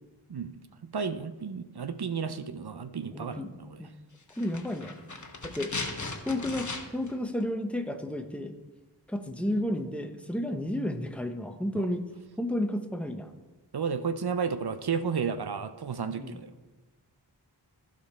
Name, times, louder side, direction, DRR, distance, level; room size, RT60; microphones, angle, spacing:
voice 1, 0.3-3.8 13.7-16.5, right 6 dB, 65° right, 11 dB, 0.6 m, -32 dB
voice 2, 3.1-3.9 4.4-5.0 5.4-5.7 6.3-8.5 9.1-12.1 12.4-13.3 16.1-16.4, left 1 dB, 5° left, 7 dB, 0.8 m, -32 dB
sound 1, 4.3-7.2 7.4-7.5, left 3 dB, 45° left, 1.1 m, -37 dB
15.0 x 5.2 x 4.2 m, 1.2 s
wide cardioid pair, 45°, 42 cm